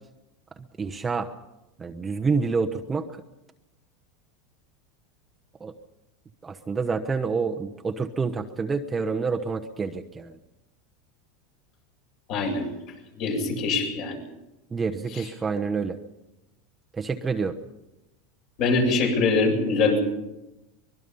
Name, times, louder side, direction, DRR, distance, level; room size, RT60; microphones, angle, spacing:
voice 1, 0.8-1.4 1.8-3.2 5.6-5.7 6.4-10.4 14.7-16.0 17.0-17.6, right 4 dB, 15° right, 4 dB, 1.1 m, -28 dB
voice 2, 12.3-12.7 13.2-14.2 15.1-15.2 18.6-20.0, left 3 dB, 55° left, 2 dB, 7.9 m, -23 dB
24.0 x 21.5 x 5.6 m, 0.96 s
supercardioid pair, 135°, 0 cm